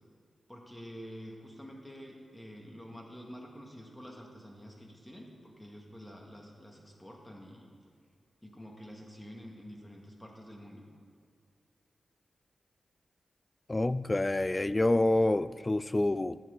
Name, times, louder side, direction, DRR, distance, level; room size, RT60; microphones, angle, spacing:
voice 1, 0.5-7.7 8.4-10.8, equal, 15° left, -1 dB, 2.2 m, -48 dB
voice 2, 13.7-16.4, left 1 dB, 30° left, 16 dB, 0.3 m, -27 dB
12.0 x 7.8 x 4.0 m, 2.2 s
supercardioid pair, 40°, 0 cm